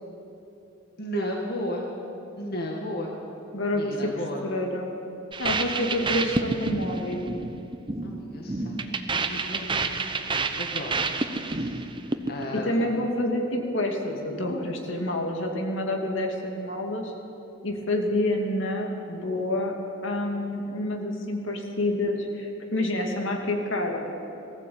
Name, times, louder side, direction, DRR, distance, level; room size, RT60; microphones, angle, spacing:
voice 1, 1.0-1.9 2.4-3.2 3.7-4.5 8.0-11.1 11.4-11.9 12.3-13.0, left 1 dB, 50° left, -1 dB, 2.1 m, -34 dB
voice 2, 3.5-3.9 4.4-5.0 5.4-7.2 12.5-17.1 17.6-19.7 20.0-24.0, left 1 dB, 65° left, 2 dB, 2.6 m, -28 dB
sound 1, 5.3-12.6, right 3 dB, 25° right, 0.9 m, -29 dB
20.0 x 15.0 x 8.7 m, 2.9 s
head